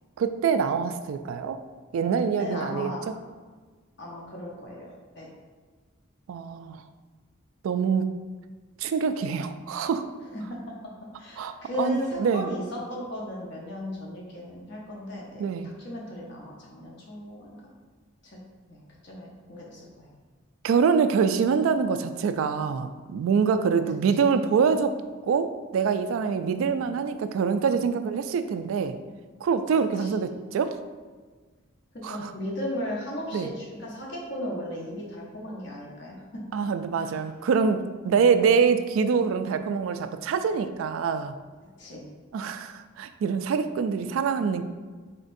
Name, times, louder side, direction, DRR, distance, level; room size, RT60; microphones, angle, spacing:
voice 1, 0.2-1.6 1.9-3.1 6.3-6.8 7.6-8.0 8.8-10.1 11.4-12.5 15.4-15.7 20.6-25.0 25.3-29.0 29.4-30.7 32.0-32.3 33.3-33.5 36.5-41.3 42.3-44.6, right 6 dB, 80° right, 10 dB, 0.3 m, -25 dB
voice 2, 2.4-3.0 4.0-4.9 5.1-5.3 10.3-10.7 11.2-17.6 18.2-18.4 18.7-20.1 24.1-24.2 26.5-26.7 30.0-30.1 32.0-36.4 36.9-37.3 38.1-38.2 41.8-42.1, left 1 dB, 60° left, -4 dB, 0.8 m, -36 dB
4.2 x 3.9 x 2.6 m, 1.4 s
head